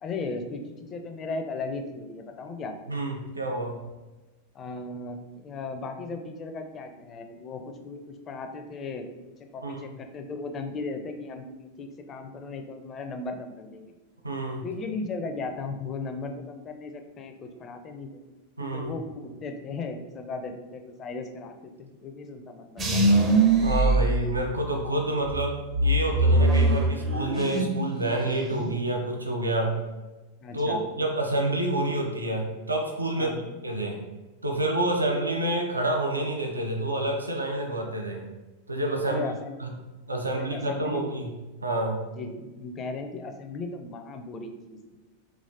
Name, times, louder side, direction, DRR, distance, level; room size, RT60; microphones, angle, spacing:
voice 1, 0.0-2.7 4.5-9.1 9.5-13.9 14.6-18.2 18.6-23.2 30.4-30.8 33.2-33.6 39.0-39.6 40.4-41.1 42.2-45.0, left 3 dB, 30° left, 5 dB, 0.4 m, -36 dB
voice 2, 2.9-3.8 9.6-9.9 14.2-14.6 18.6-18.9 23.6-29.8 30.5-33.3 33.6-34.0 34.4-38.3 38.7-39.2 39.6-39.7 40.1-41.3 41.6-42.0, right 1 dB, 80° right, 1 dB, 0.5 m, -28 dB
sound 1, 22.8-24.8 25.3-27.9 28.2-28.7, right 2 dB, 20° right, 0.5 m, -22 dB
4.0 x 2.9 x 2.5 m, 1.2 s
figure-of-eight pair, 90°, 0 cm